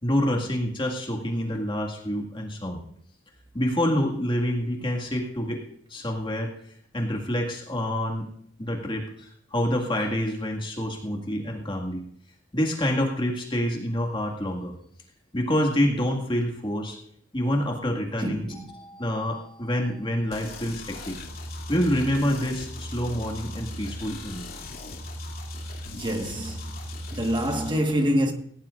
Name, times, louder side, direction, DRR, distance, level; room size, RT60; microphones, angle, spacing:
voice 1, 0.0-2.8 3.5-5.6 5.9-6.5 6.9-8.3 8.6-12.0 12.5-14.7 15.3-17.0 17.3-21.2 21.7-24.5, equal, 25° left, 1.9 m, -27 dB
voice 2, 18.2-18.7 18.9-19.0 25.9-26.7 27.1-28.3, equal, 25° right, 1.5 m, -26 dB
sound 1, 20.3-27.7, left 1 dB, 50° left, 2.7 m, -38 dB
18.0 x 17.5 x 2.5 m
head